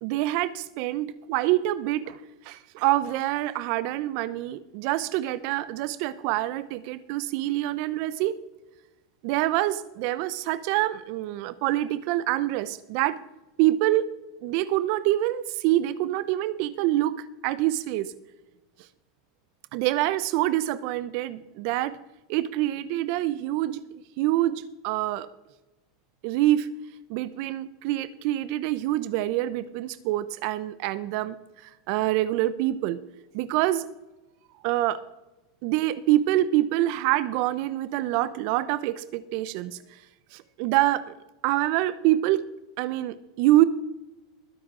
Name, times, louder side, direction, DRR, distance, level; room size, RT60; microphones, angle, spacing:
voice 1, 0.0-8.4 9.2-13.2 13.6-14.1 14.4-18.1 19.7-22.0 22.3-23.8 24.2-25.3 26.2-26.7 27.1-31.4 31.6-33.0 33.3-33.9 34.6-35.0 35.6-40.0 40.3-41.1 41.4-42.4 42.8-43.6, right 15 dB, 60° right, 15 dB, 0.6 m, -26 dB
22.0 x 7.8 x 3.8 m, 1.0 s
hypercardioid pair, 110°, 2 cm